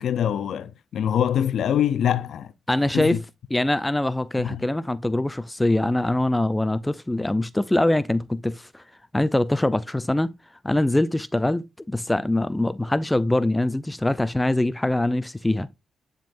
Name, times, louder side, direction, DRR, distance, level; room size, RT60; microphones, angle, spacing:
voice 1, 0.0-2.5 2.9-3.2 4.4-4.7, left 9 dB, 75° left, 0.5 m, -24 dB
voice 2, 2.7-3.2 3.5-8.8 9.1-10.3 10.6-15.7, left 1 dB, 10° left, 0.4 m, -23 dB
10.0 x 3.7 x 2.5 m
cardioid pair, 80°, 0 cm